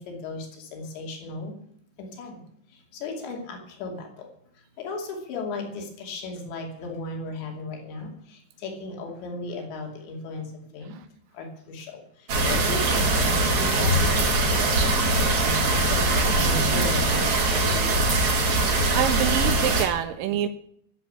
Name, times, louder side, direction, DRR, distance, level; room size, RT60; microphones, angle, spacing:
voice 1, 0.0-1.5 2.0-2.4 2.7-4.3 4.8-10.9 11.3-18.1, left 3 dB, 75° left, 2 dB, 4.9 m, -36 dB
sound 1, 12.3-19.9, right 2 dB, 45° right, 3.5 m, -22 dB
voice 2, 18.9-20.5, right 10 dB, 85° right, 8 dB, 2.0 m, -26 dB
15.5 x 7.7 x 8.8 m, 0.66 s
omnidirectional pair, 5.2 m